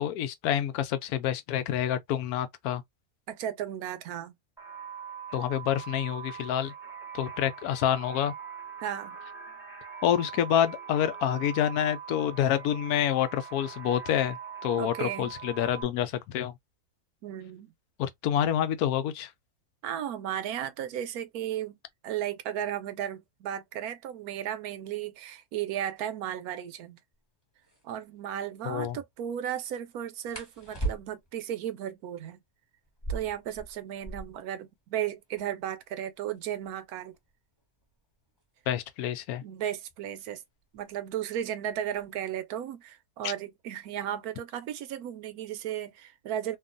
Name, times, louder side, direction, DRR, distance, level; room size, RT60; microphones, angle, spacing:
voice 1, 0.0-2.8 5.3-6.7 7.1-8.3 10.0-14.4 14.6-16.5 18.0-19.3 28.6-29.0 38.7-39.4 43.2-43.3, left 10 dB, 85° left, 1.1 m, -28 dB
voice 2, 3.3-4.3 8.8-9.2 14.8-15.3 17.2-17.7 19.8-21.8 22.0-27.0 27.8-32.4 33.1-37.1 39.4-40.4 40.7-46.6, right 10 dB, 85° right, 1.1 m, -35 dB
sound 1, 4.6-15.8, right 7 dB, ahead, 0.7 m, -42 dB
sound 2, 27.1-27.2 27.6-27.8 30.3-31.4 32.9-34.5 34.8-34.9 35.1-35.7 36.3-38.9 39.9-40.2 40.6-41.1 41.4-42.1, right 3 dB, 20° left, 1.3 m, -38 dB
2.9 x 2.4 x 2.5 m
omnidirectional pair, 1.6 m